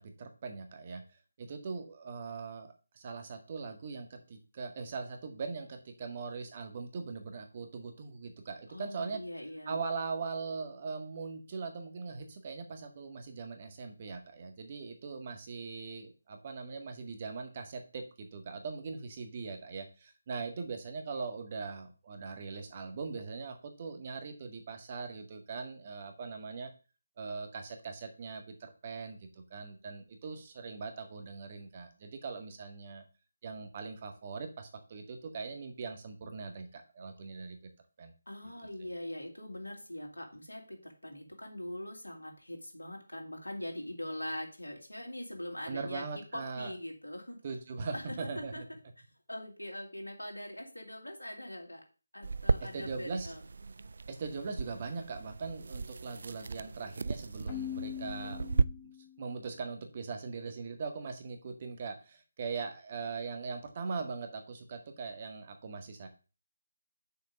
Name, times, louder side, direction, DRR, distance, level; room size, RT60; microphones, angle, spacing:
voice 1, 0.0-9.2 9.7-26.7 27.2-33.0 33.4-37.6 38.0-38.1 45.7-46.7 47.4-48.6 52.6-53.3 54.1-58.6 59.2-66.1, right 4 dB, 35° right, 6 dB, 1.8 m, -41 dB
voice 2, 8.7-9.8 38.3-47.4 47.9-48.6 49.3-51.8 52.1-53.4, left 1 dB, 85° left, 1 dB, 3.3 m, -42 dB
sound 1, 52.2-58.6, right 4 dB, 55° right, 0.4 m, -35 dB
Keyboard (musical), 57.5-59.3, left 11 dB, 25° left, 1.3 m, -41 dB
6.9 x 5.1 x 6.9 m, 0.34 s
figure-of-eight pair, 155°, 0 cm